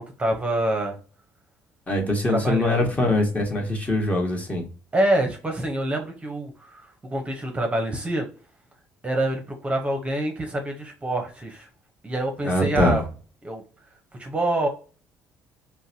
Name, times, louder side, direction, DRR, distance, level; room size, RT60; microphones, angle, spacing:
voice 1, 0.2-1.0 2.3-2.9 4.9-8.3 9.0-11.7 12.0-13.0 13.4-13.6 14.2-14.7, right 1 dB, 20° right, 3 dB, 0.8 m, -26 dB
voice 2, 1.9-4.6 12.4-13.0, left 1 dB, 25° left, 1 dB, 1.2 m, -23 dB
3.8 x 2.2 x 2.7 m, 0.38 s
hypercardioid pair, 65°, 6 cm